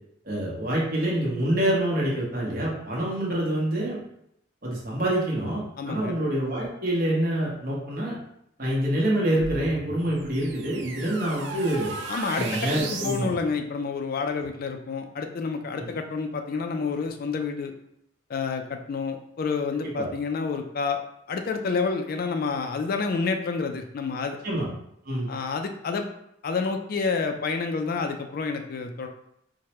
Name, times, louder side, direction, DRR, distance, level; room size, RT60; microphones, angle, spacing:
voice 1, 0.2-4.0 4.6-8.2 8.6-11.9 12.4-13.3 14.3-14.4 15.7-15.9 19.8-20.1 24.4-24.7 25.0-25.3, right 1 dB, 50° right, -4 dB, 1.1 m, -26 dB
voice 2, 5.8-6.1 12.1-17.7 18.3-21.0 21.3-24.4 25.3-26.1 26.4-29.1, left 4 dB, 50° left, 6 dB, 0.4 m, -29 dB
sound 1, 9.3-13.3, right 3 dB, 70° right, 0.5 m, -36 dB
4.7 x 2.2 x 2.9 m, 0.76 s
head